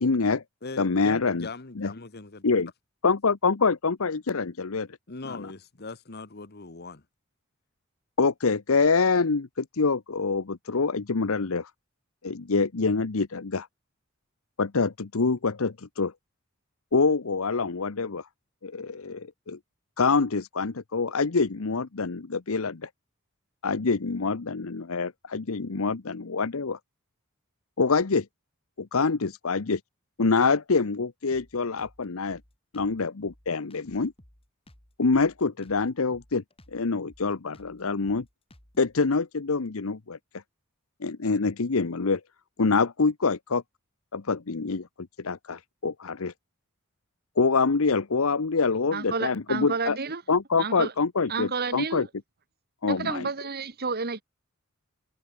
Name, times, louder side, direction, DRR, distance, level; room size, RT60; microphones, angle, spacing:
voice 1, 0.0-0.4 0.8-1.5 1.8-1.9 2.4-2.7 3.0-4.9 5.3-5.5 8.2-11.7 12.2-13.7 14.6-16.1 16.9-18.2 18.6-19.6 20.0-22.9 23.6-26.8 27.8-28.3 28.8-29.8 30.2-32.4 32.7-34.1 35.0-36.4 36.7-38.2 38.8-40.2 41.0-42.2 42.6-43.6 44.1-46.3 47.4-50.0 50.3-52.1 52.8-53.3, left 4 dB, 75° left, 0.9 m, -25 dB
voice 2, 0.6-2.4 5.1-7.0, left 3 dB, 50° left, 1.3 m, -40 dB
Drum kit, 31.3-39.0, left 1 dB, 25° left, 3.7 m, -56 dB
voice 3, 48.9-50.2 50.6-50.9 51.3-52.1 52.9-54.2, right 4 dB, 45° right, 1.7 m, -31 dB
head